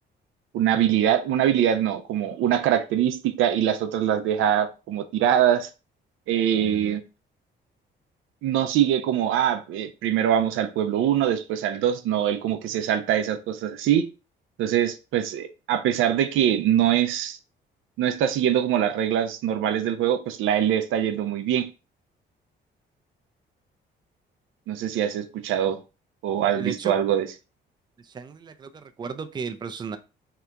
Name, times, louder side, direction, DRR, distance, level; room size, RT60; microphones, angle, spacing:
voice 1, 0.5-5.7 6.3-7.0 8.4-14.1 14.6-17.4 18.0-21.7 24.7-25.8 26.2-27.3, right 10 dB, 85° right, 0.5 m, -23 dB
voice 2, 26.5-26.9 28.0-30.0, right 5 dB, 20° right, 0.3 m, -34 dB
2.8 x 2.4 x 3.3 m
cardioid pair, 90°, 20 cm